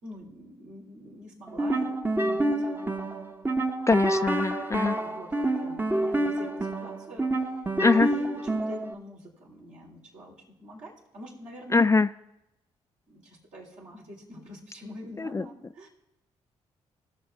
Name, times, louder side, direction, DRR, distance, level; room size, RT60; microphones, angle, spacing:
voice 1, 0.0-3.1 4.1-5.3 5.6-7.5 7.9-10.3 10.6-12.0 13.1-15.9, equal, 65° right, -3 dB, 3.5 m, -45 dB
sound 1, 1.5-8.9, right 1 dB, 15° right, 0.8 m, -28 dB
voice 2, 3.9-5.0 7.8-8.1 11.7-12.1 15.3-15.4, left 4 dB, 20° left, 13 dB, 0.3 m, -22 dB
18.0 x 6.5 x 3.4 m, 0.88 s
supercardioid pair, 50°, 13 cm